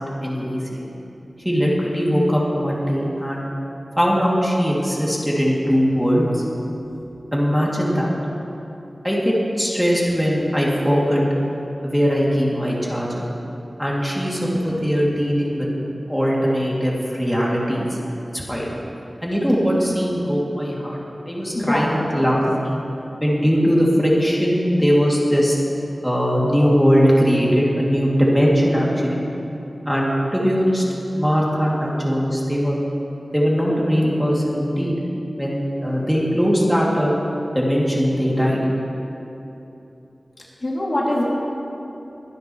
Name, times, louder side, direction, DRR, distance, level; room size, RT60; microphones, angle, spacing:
voice 1, 0.2-0.8 1.4-3.5 4.0-6.4 7.3-8.1 9.0-11.2 11.8-13.3 13.8-15.7 16.1-18.0 18.3-18.7 19.2-21.0 21.3-22.8 23.2-25.6 26.0-29.2 29.9-30.8 31.1-32.8 33.3-34.9 35.4-37.1 37.5-38.6, equal, ahead, -5 dB, 2.5 m, -20 dB
voice 2, 21.5-21.9 40.6-41.2, left 1 dB, 50° left, -5 dB, 2.6 m, -22 dB
23.5 x 9.7 x 3.1 m, 2.9 s
wide cardioid pair, 60°, 0 cm